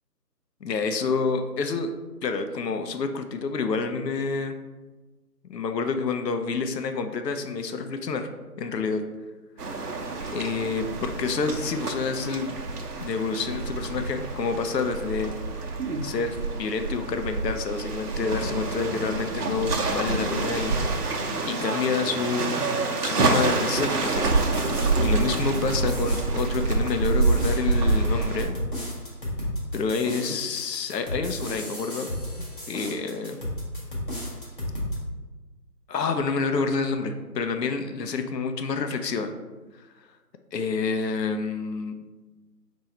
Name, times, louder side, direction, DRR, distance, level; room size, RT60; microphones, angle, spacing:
voice 1, 0.6-1.9 2.2-4.6 5.5-8.3 8.6-9.0 9.6-9.8 10.3-12.5 13.0-15.3 16.0-21.2 21.5-22.7 23.0-24.3 25.0-28.5 29.7-32.1 32.7-33.4 35.9-39.3 40.5-42.1, left 4 dB, 75° left, 7 dB, 0.6 m, -28 dB
sound 1, 9.6-28.5, right 3 dB, 65° right, 0.8 m, -27 dB
sound 2, 24.4-35.0, left 1 dB, 30° left, 0.9 m, -34 dB
4.5 x 2.7 x 4.1 m, 1.2 s
figure-of-eight pair, 165°, 49 cm